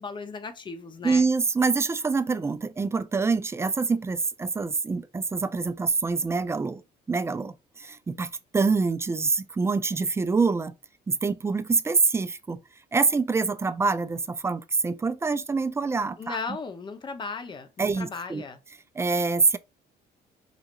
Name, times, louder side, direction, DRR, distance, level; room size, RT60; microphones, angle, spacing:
voice 1, 0.0-1.3 16.2-18.6, left 4 dB, 30° left, 0.8 m, -36 dB
voice 2, 1.0-6.8 7.1-10.7 11.1-12.6 12.9-16.4 17.8-18.4 19.0-19.6, right 4 dB, 15° right, 0.3 m, -25 dB
4.7 x 2.9 x 2.5 m
cardioid pair, 110°, 17 cm